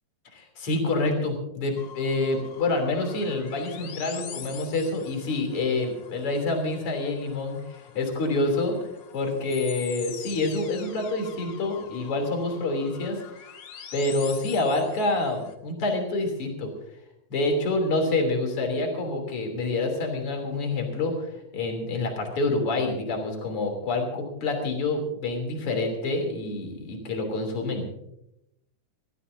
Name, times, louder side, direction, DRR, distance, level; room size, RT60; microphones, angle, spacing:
voice 1, 0.3-13.2 13.9-16.7 17.3-27.9, left 2 dB, 40° left, 3 dB, 3.7 m, -27 dB
sound 1, 1.8-15.5, left 8 dB, 60° left, 1.8 m, -44 dB
23.0 x 15.5 x 2.7 m, 0.83 s
omnidirectional pair, 4.3 m